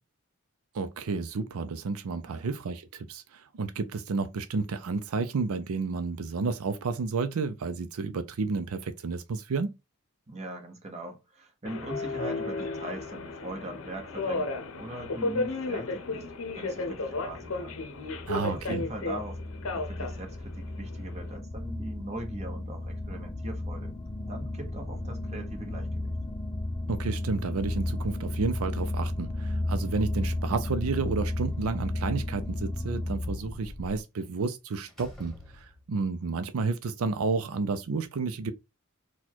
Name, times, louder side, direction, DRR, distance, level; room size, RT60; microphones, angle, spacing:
voice 1, 0.7-9.7 18.3-18.8 26.9-38.5, right 4 dB, 85° right, 0.5 m, -31 dB
voice 2, 2.3-2.6 10.3-16.3 16.5-17.8 18.3-23.9 24.3-26.2, right 1 dB, 30° right, 1.0 m, -41 dB
Subway metro underground, 11.7-21.4, left 3 dB, 70° left, 0.7 m, -34 dB
sound 1, 16.5-34.0, left 1 dB, 20° left, 0.4 m, -34 dB
Slam, 31.1-32.1 34.2-34.4 34.9-36.1, left 1 dB, ahead, 1.5 m, -50 dB
4.1 x 2.3 x 4.4 m
head